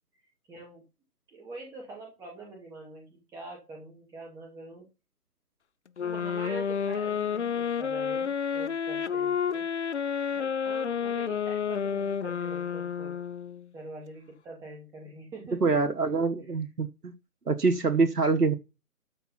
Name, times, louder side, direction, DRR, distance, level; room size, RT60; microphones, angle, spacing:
voice 1, 0.5-0.8 1.3-4.8 6.0-9.6 10.3-13.1 13.7-15.6, right 2 dB, 5° right, 2.3 m, -44 dB
sound 1, 6.0-13.7, left 7 dB, 50° left, 0.5 m, -30 dB
voice 2, 15.5-17.1 17.5-18.6, right 4 dB, 90° right, 1.4 m, -25 dB
13.0 x 4.7 x 5.6 m
figure-of-eight pair, 145°, 46 cm